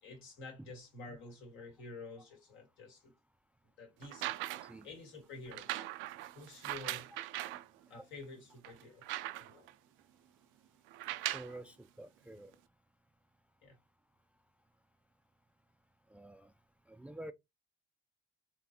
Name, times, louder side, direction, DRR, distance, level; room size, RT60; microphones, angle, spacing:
voice 1, 0.0-3.1 3.8-4.4 4.8-5.8 6.3-7.1 7.9-9.0 9.4-9.7 13.6-13.8, left 3 dB, 75° left, 2.0 m, -50 dB
sound 1, 4.0-4.8 5.5-7.7 8.2-8.3 8.6-9.7 10.9-11.6 12.5-12.6, right 15 dB, 80° right, 0.4 m, -40 dB
voice 2, 11.3-12.5 16.1-16.5 16.9-17.3, right 1 dB, 5° right, 0.3 m, -49 dB
4.1 x 3.2 x 2.9 m
cardioid pair, 95°, 20 cm